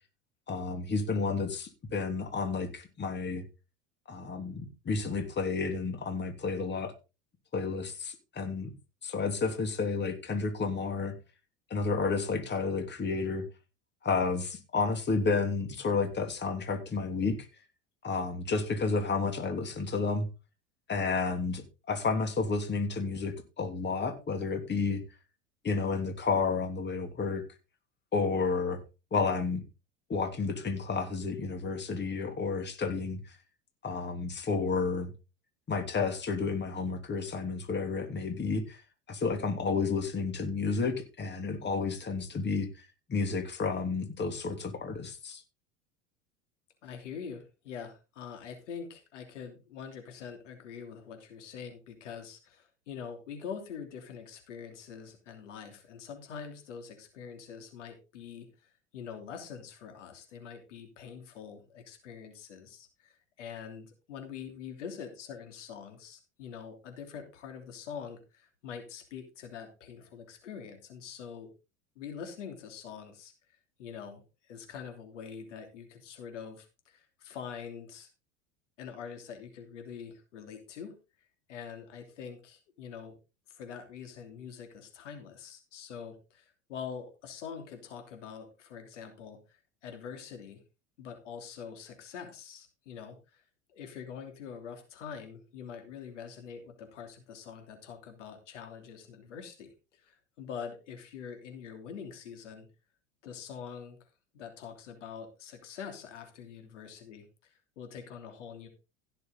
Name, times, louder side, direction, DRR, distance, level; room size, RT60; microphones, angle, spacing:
voice 1, 0.5-3.4 4.1-6.9 7.5-8.7 9.0-11.1 11.7-13.4 14.0-17.4 18.0-20.3 20.9-21.6 21.9-25.0 25.6-27.4 28.1-28.8 29.1-29.6 30.1-33.2 33.8-35.1 35.7-38.8 39.1-45.4, left 4 dB, 30° left, 2.9 m, -31 dB
voice 2, 46.8-71.5 71.9-73.3 73.8-78.1 78.8-83.2 83.5-90.6 91.0-93.4 93.7-102.7 103.2-104.0 104.3-108.7, left 7 dB, 85° left, 3.0 m, -44 dB
16.0 x 6.9 x 3.9 m
hypercardioid pair, 90°, 36 cm